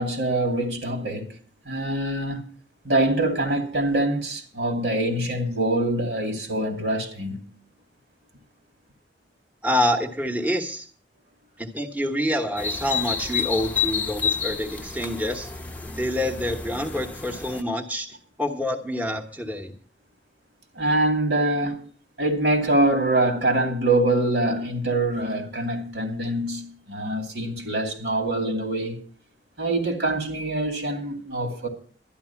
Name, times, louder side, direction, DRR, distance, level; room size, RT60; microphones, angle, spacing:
voice 1, 0.0-1.3 1.6-2.5 2.8-7.5 20.8-21.8 22.2-29.0 29.6-31.7, right 1 dB, 75° right, 2.6 m, -24 dB
voice 2, 9.6-10.9 11.6-15.5 16.0-18.1 18.4-19.7, left 1 dB, 10° right, 1.2 m, -27 dB
sound 1, 12.6-17.6, left 6 dB, 10° left, 0.8 m, -30 dB
12.0 x 11.0 x 5.8 m
head